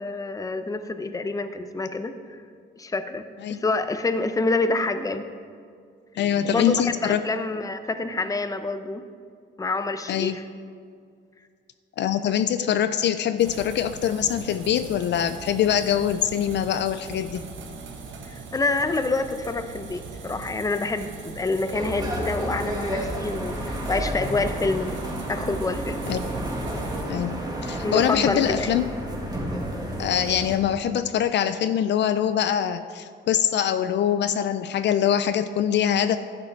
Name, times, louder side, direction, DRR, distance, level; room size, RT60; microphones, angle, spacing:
voice 1, 0.0-2.1 2.8-3.2 3.5-5.3 6.4-6.7 7.0-9.0 9.6-10.4 18.3-25.0 25.3-26.0 27.8-28.7, left 3 dB, 15° left, 10 dB, 0.6 m, -27 dB
voice 2, 6.2-7.2 10.1-10.4 12.0-17.4 26.1-26.2 27.1-28.9 30.0-36.2, left 10 dB, 60° left, 11 dB, 0.4 m, -23 dB
sound 1, 13.4-27.0, right 5 dB, 70° right, 1.1 m, -40 dB
sound 2, 21.7-30.6, right 1 dB, 20° right, 1.9 m, -31 dB
11.5 x 7.6 x 4.6 m, 2.1 s
cardioid pair, 90°, 20 cm